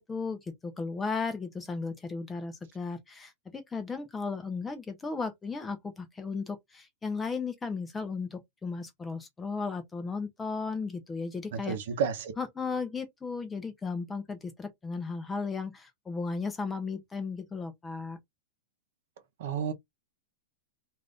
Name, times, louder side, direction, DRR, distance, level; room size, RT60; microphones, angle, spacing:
voice 1, 0.0-11.8 12.4-18.2, left 4 dB, 10° left, 0.6 m, -35 dB
voice 2, 11.7-12.3 19.4-19.7, right 7 dB, 55° right, 0.8 m, -30 dB
2.5 x 2.5 x 3.4 m
supercardioid pair, 170°, 0 cm